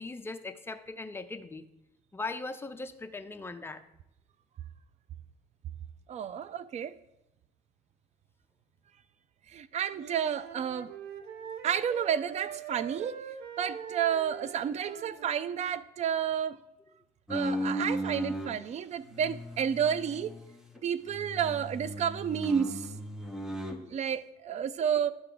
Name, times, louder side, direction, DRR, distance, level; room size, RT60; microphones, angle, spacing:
voice 1, 0.0-1.6 2.1-3.8 23.7-23.9, left 3 dB, 15° left, 0.5 m, -39 dB
voice 2, 6.1-6.9 9.5-10.9 11.6-13.2 13.6-16.6 17.3-20.3 20.8-22.9 23.9-25.1, right 8 dB, 40° right, 0.4 m, -31 dB
Wind instrument woodwind instrument, 9.9-15.6, right 8 dB, 70° right, 0.8 m, -43 dB
sound 1, 17.3-18.6 19.1-20.8 21.1-23.8, equal, 5° right, 0.9 m, -36 dB
11.0 x 4.6 x 3.9 m
cardioid pair, 110°, 17 cm